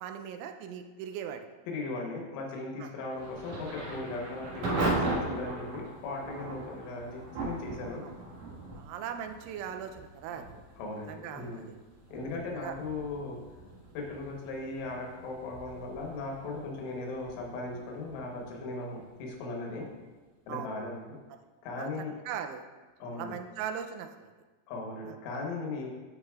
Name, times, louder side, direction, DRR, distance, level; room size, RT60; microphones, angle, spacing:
voice 1, 0.0-1.5 2.8-2.9 8.0-8.1 8.8-10.4 11.1-11.8 12.6-12.7 20.5-20.7 21.8-21.9 22.3-22.7 23.2-24.3 25.1-25.2, right 8 dB, 85° right, 6 dB, 3.0 m, -39 dB
voice 2, 1.7-8.1 10.3-10.4 10.8-11.7 12.1-13.4 14.0-19.9 20.5-21.2 21.6-22.1 23.0-23.4 24.7-25.9, left 3 dB, 85° left, 0 dB, 3.5 m, -38 dB
Thunder / Rain, 3.2-19.9, right 2 dB, 60° right, 2.3 m, -39 dB
12.5 x 5.0 x 2.3 m, 1.3 s
omnidirectional pair, 5.4 m